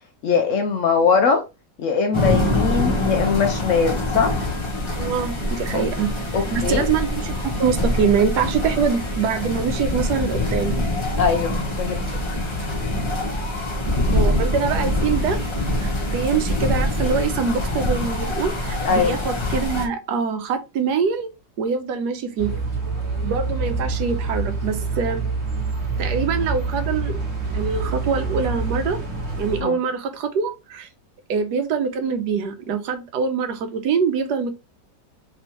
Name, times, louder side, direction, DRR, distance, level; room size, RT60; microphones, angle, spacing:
voice 1, 0.2-1.4 1.8-4.5 5.7-5.8 6.3-6.9 11.2-12.0 18.9-19.2 29.6-29.8, left 5 dB, 75° left, 0.7 m, -21 dB
sound 1, 2.1-19.9, left 1 dB, 25° left, 0.7 m, -24 dB
voice 2, 4.9-6.1 6.5-10.8 14.1-15.4 15.8-21.3 21.6-22.5 23.2-25.3 26.0-27.2 27.5-29.0 29.4-30.9 31.3-34.5, right 6 dB, 70° right, 1.2 m, -24 dB
sound 2, 22.4-29.6, right 4 dB, 40° right, 1.4 m, -26 dB
3.5 x 3.1 x 2.9 m
omnidirectional pair, 1.9 m